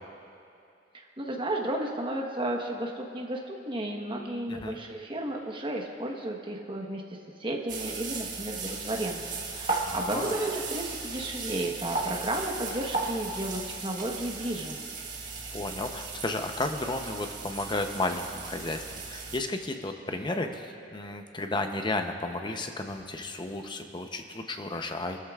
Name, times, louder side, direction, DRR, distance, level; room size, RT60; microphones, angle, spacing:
voice 1, 0.9-7.0 7.4-14.8, right 1 dB, 30° right, 1 dB, 1.2 m, -33 dB
sound 1, 7.7-19.4, right 3 dB, 45° right, 1.6 m, -36 dB
voice 2, 9.9-10.3 15.5-25.2, left 2 dB, 25° left, 5 dB, 0.7 m, -33 dB
22.0 x 13.5 x 2.4 m, 2.6 s
head